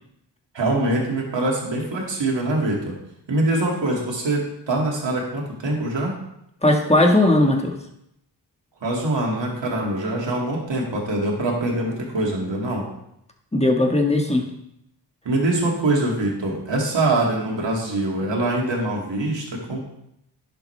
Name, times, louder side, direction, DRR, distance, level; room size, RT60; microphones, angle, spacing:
voice 1, 0.5-2.9 3.3-6.1 8.8-12.8 15.2-19.8, right 2 dB, 80° right, -2 dB, 2.4 m, -24 dB
voice 2, 6.6-7.7 13.5-14.4, left 1 dB, 15° left, 2 dB, 1.5 m, -18 dB
11.0 x 6.8 x 3.3 m, 0.78 s
cardioid pair, 65°, 43 cm